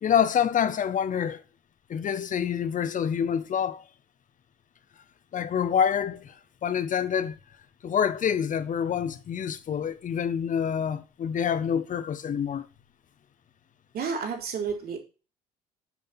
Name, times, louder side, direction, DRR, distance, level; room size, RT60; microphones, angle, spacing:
voice 1, 0.0-1.4 1.9-3.8 5.3-6.3 6.6-7.4 7.8-12.7, left 8 dB, 40° left, 1.2 m, -27 dB
voice 2, 13.9-15.0, right 6 dB, 50° right, 3.6 m, -31 dB
9.2 x 5.5 x 5.9 m
hypercardioid pair, 60°, 21 cm